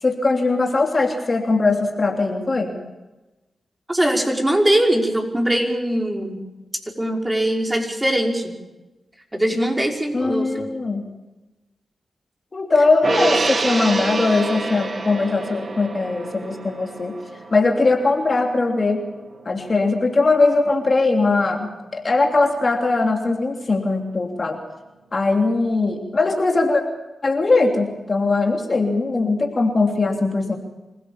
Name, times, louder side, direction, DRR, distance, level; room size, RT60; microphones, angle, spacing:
voice 1, 0.0-2.8 10.1-11.1 12.5-17.2 17.5-19.0 19.4-24.6 25.1-26.8 27.2-30.6, left 3 dB, 45° left, 3 dB, 3.2 m, -20 dB
voice 2, 3.9-6.4 7.0-8.5 9.3-10.7, right 1 dB, 15° right, 1 dB, 5.6 m, -21 dB
Gong, 13.0-19.6 20.0-20.1, right 3 dB, 55° right, 2.7 m, -28 dB
26.0 x 16.0 x 7.3 m, 1.1 s
supercardioid pair, 40°, 0 cm